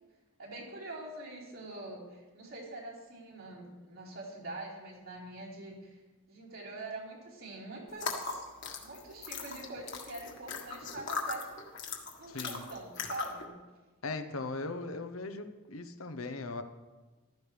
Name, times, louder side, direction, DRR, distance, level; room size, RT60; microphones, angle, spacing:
voice 1, 0.4-6.0 6.3-8.5 8.8-11.6 12.2-13.6, right 2 dB, 75° right, -6 dB, 4.5 m, -44 dB
sound 1, 7.9-13.4, left 5 dB, 60° left, 1.6 m, -39 dB
voice 2, 12.3-12.6 14.0-16.6, left 3 dB, 90° left, 8 dB, 0.9 m, -39 dB
15.0 x 13.0 x 3.4 m, 1.2 s
head